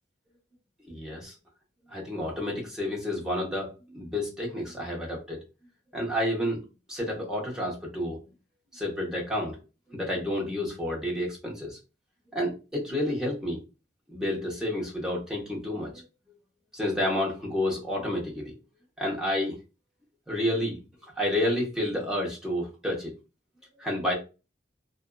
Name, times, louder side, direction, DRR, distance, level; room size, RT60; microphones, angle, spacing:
voice 1, 0.9-1.3 1.9-5.4 5.9-6.6 6.9-8.2 8.7-9.6 9.9-11.8 12.3-13.6 14.1-16.0 16.7-18.5 19.0-19.6 20.3-20.8 21.2-23.1 23.8-24.1, left 1 dB, 5° right, -4 dB, 0.9 m, -30 dB
2.5 x 2.4 x 2.2 m, 0.30 s
head